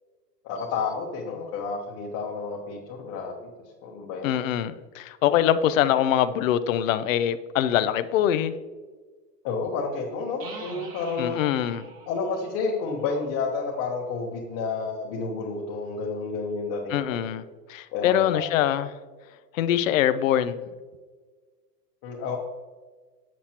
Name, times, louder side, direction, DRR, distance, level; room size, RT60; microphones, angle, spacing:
voice 1, 0.4-3.5 3.8-4.3 9.4-11.4 12.1-17.2 17.9-18.4 22.0-22.4, left 4 dB, 30° left, -2 dB, 0.9 m, -30 dB
voice 2, 4.2-8.5 11.2-11.9 16.9-17.4 17.7-18.9 19.5-20.6, left 11 dB, 55° left, 12 dB, 0.5 m, -23 dB
sound 1, 10.4-14.0, right 4 dB, 50° right, 2.1 m, -46 dB
8.1 x 7.5 x 2.9 m, 1.4 s
hypercardioid pair, 145°, 50 cm